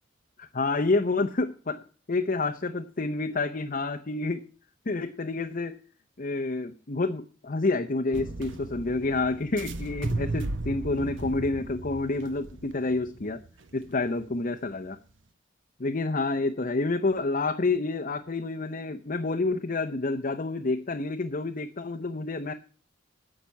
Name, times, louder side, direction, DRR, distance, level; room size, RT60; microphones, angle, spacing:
voice 1, 0.4-4.4 4.9-5.8 6.2-13.4 13.7-15.0 15.8-22.5, left 3 dB, 45° left, 4 dB, 0.8 m, -28 dB
sound 1, 8.1-14.2, right 2 dB, 70° right, 1.0 m, -35 dB
10.0 x 6.7 x 8.4 m, 0.39 s
head